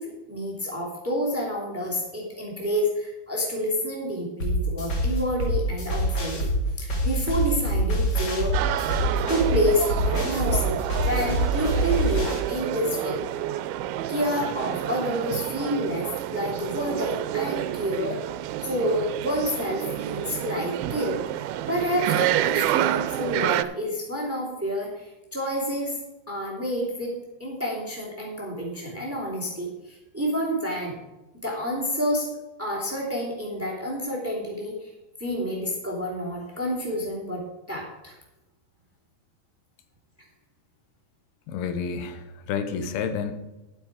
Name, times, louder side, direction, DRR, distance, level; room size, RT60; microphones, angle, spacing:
voice 1, 0.0-6.5 6.8-8.5 9.3-10.8 11.0-13.2 14.1-18.2 18.6-26.0 26.3-27.1 27.4-31.0 31.4-32.3 32.6-34.9 35.2-38.1, equal, 5° right, -2 dB, 2.0 m, -29 dB
sound 1, 4.4-12.4, right 1 dB, 35° left, 1.9 m, -25 dB
sound 2, 8.5-23.6, right 13 dB, 85° right, 2.4 m, -29 dB
voice 2, 41.5-43.3, left 6 dB, 85° left, 9 dB, 2.9 m, -30 dB
12.0 x 8.2 x 4.8 m, 1.0 s
omnidirectional pair, 4.4 m